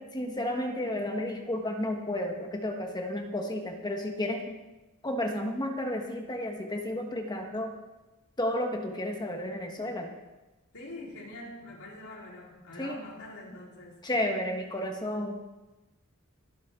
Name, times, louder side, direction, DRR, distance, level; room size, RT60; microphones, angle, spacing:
voice 1, 0.0-4.5 5.0-7.7 8.4-10.1 12.8-13.0 14.0-15.5, left 1 dB, 20° left, 3 dB, 1.4 m, -32 dB
voice 2, 10.7-14.0, left 2 dB, 75° left, -5 dB, 4.3 m, -44 dB
23.0 x 8.5 x 3.8 m, 1.1 s
head